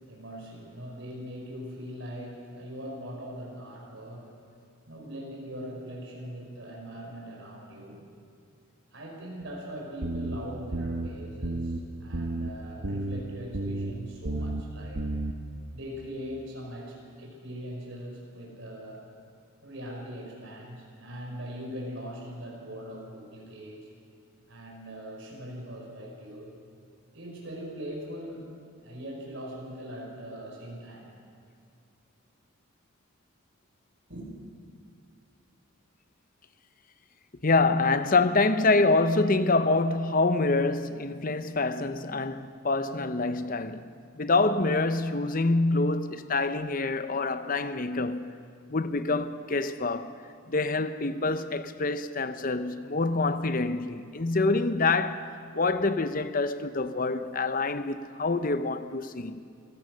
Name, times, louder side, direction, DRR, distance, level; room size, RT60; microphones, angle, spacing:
voice 1, 0.0-4.3 4.9-8.0 8.9-15.0 15.7-19.0 19.6-23.9 24.5-26.5 27.1-28.5 28.8-31.1 34.1-34.3, equal, 60° right, 5.5 m, -41 dB
sound 1, 10.0-10.4 10.7-11.1 11.4-11.8 12.1-12.5 12.8-13.2 13.5-13.9 14.2-14.6 15.0-15.3, right 2 dB, 85° right, 1.2 m, -31 dB
voice 2, 37.4-43.9 44.2-48.3 48.7-50.1 50.5-59.4, left 3 dB, 40° left, 0.8 m, -26 dB
26.5 x 16.5 x 6.5 m
head